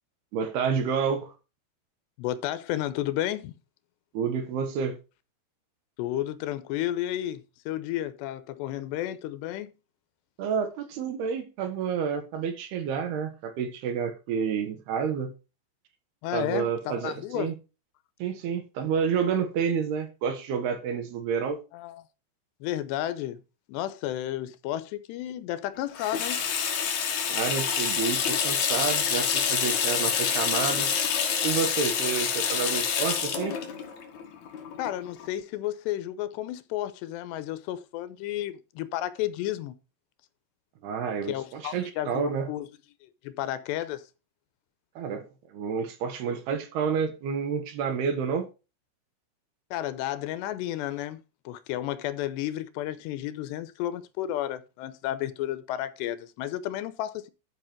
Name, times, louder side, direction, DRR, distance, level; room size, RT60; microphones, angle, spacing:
voice 1, 0.3-1.3 4.1-5.0 10.4-15.3 16.3-17.5 18.2-21.6 27.3-30.9 31.4-33.6 40.8-42.5 45.0-48.5, right 6 dB, 70° right, 3.4 m, -29 dB
voice 2, 2.2-3.5 6.0-9.7 16.2-17.5 21.7-22.0 22.6-23.4 23.7-26.4 34.8-39.7 41.3-42.7 43.0-44.0 49.7-57.3, left 13 dB, 85° left, 3.0 m, -32 dB
Water tap faucet / Sink (filling or washing), 25.9-35.3, left 7 dB, 55° left, 2.5 m, -27 dB
12.5 x 5.7 x 4.5 m
omnidirectional pair, 4.9 m